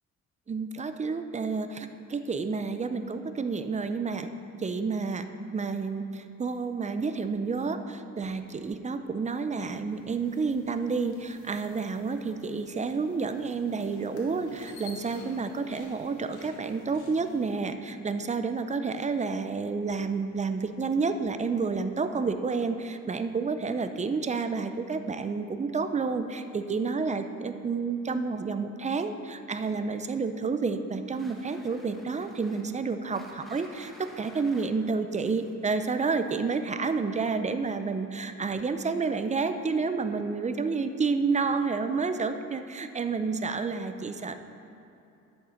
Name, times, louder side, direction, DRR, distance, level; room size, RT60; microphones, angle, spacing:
voice 1, 0.5-4.3 4.6-5.3 5.5-44.4, right 4 dB, 25° right, 9 dB, 0.5 m, -30 dB
sound 1, 9.9-17.6, left 3 dB, 80° left, 1.6 m, -52 dB
sound 2, 31.1-36.8, equal, ahead, 1.2 m, -53 dB
11.5 x 6.6 x 4.4 m, 2.8 s
cardioid pair, 90°, 30 cm